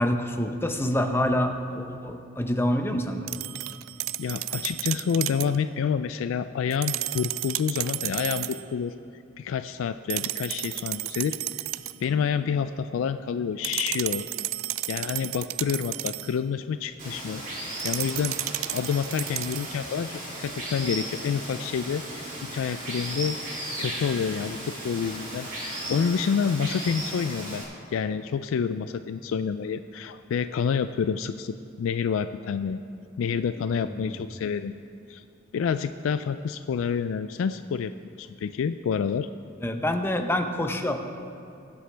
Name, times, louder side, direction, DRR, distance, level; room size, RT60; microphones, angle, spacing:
voice 1, 0.0-3.3 33.9-34.1 39.6-41.0, left 1 dB, 10° left, 5 dB, 0.7 m, -26 dB
sound 1, 3.3-5.6 6.7-8.7 10.1-12.1 13.6-16.4 17.8-19.8, right 17 dB, 85° right, 0.3 m, -32 dB
voice 2, 4.2-8.9 9.4-11.4 12.0-14.3 14.9-17.4 17.8-18.4 18.7-23.4 23.8-27.6 27.9-32.8 33.2-34.7 35.1-35.2 35.5-37.9 38.2-39.3, left 6 dB, 75° left, 11 dB, 0.3 m, -28 dB
Water, 17.0-27.6, right 1 dB, 40° right, 2.8 m, -36 dB
20.5 x 8.0 x 3.4 m, 2.6 s
head